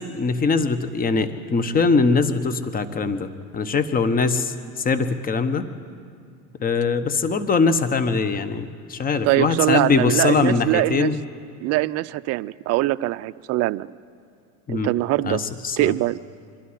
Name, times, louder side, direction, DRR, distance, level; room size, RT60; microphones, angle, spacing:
voice 1, 0.2-5.7 6.6-11.2 14.7-14.9 15.2-15.9, left 4 dB, 20° left, 12 dB, 1.1 m, -22 dB
voice 2, 9.2-11.1 11.6-13.9 14.7-15.4 15.8-16.2, right 17 dB, 35° right, 15 dB, 0.4 m, -22 dB
25.0 x 12.5 x 9.8 m, 2.2 s
hypercardioid pair, 95°, 46 cm